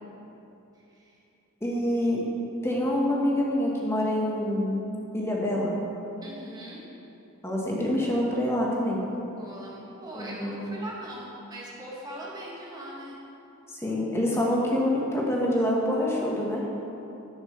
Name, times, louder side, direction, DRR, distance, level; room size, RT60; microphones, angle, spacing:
voice 1, 0.8-1.2 6.2-6.8 9.4-13.2, right 1 dB, 20° right, -4 dB, 1.8 m, -41 dB
voice 2, 1.6-2.2 2.6-4.8 5.1-5.8 7.4-9.0 10.1-10.7 13.7-16.6, left 1 dB, 10° left, -3 dB, 1.6 m, -26 dB
11.0 x 5.9 x 7.0 m, 3.0 s
head